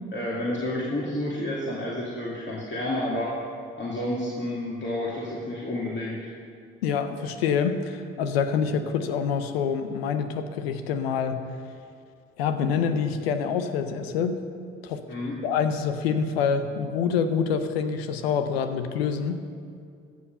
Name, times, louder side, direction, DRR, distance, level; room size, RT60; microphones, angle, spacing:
voice 1, 0.1-3.3 3.8-6.2 15.1-15.4, left 1 dB, 40° left, -6 dB, 2.5 m, -30 dB
voice 2, 6.8-11.6 12.4-14.4 14.8-15.0 15.4-19.4, left 6 dB, 85° left, 9 dB, 0.6 m, -26 dB
14.0 x 7.6 x 5.4 m, 2.3 s
hypercardioid pair, 40°, 30 cm